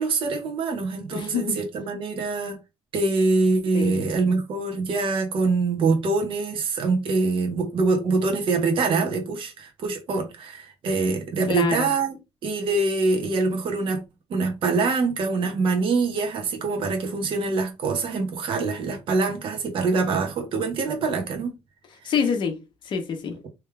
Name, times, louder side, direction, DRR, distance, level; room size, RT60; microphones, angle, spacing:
voice 1, 0.0-2.6 2.9-12.1 12.4-14.0 14.3-21.6 22.0-22.1, right 3 dB, 55° right, 1.3 m, -24 dB
voice 2, 1.1-1.6 3.7-4.2 11.5-11.9 22.0-23.4, left 6 dB, 45° left, 1.1 m, -27 dB
3.4 x 3.2 x 3.4 m
cardioid pair, 155°, 11 cm